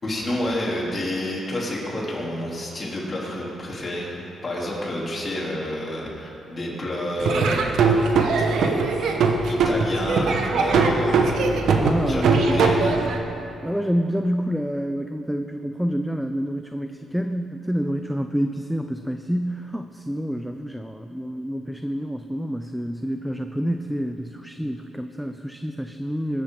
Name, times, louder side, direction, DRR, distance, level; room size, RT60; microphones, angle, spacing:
voice 1, 0.0-4.2 4.4-7.9 9.5-13.2, left 1 dB, 30° left, -5 dB, 3.4 m, -29 dB
Laughter / Drum, 7.2-13.2, right 4 dB, 75° right, 1.2 m, -21 dB
voice 2, 11.8-12.7 13.6-26.4, equal, ahead, 7 dB, 0.4 m, -28 dB
20.5 x 11.5 x 3.9 m, 2.9 s
cardioid pair, 125°, 0 cm